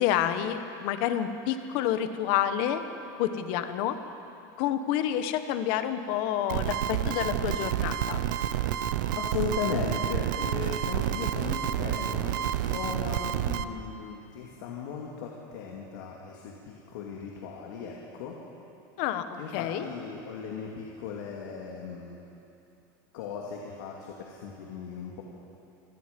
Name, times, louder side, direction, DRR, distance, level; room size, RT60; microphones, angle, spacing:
voice 1, 0.0-2.8 3.2-4.0 4.6-8.2 19.0-19.9, left 10 dB, 55° left, 9 dB, 1.3 m, -29 dB
sound 1, 6.5-13.6, right 10 dB, 90° right, 0.9 m, -29 dB
voice 2, 9.1-18.4 19.4-22.3 23.1-25.2, left 6 dB, 80° left, -1 dB, 2.5 m, -37 dB
26.5 x 20.0 x 5.3 m, 2.8 s
supercardioid pair, 165°, 10 cm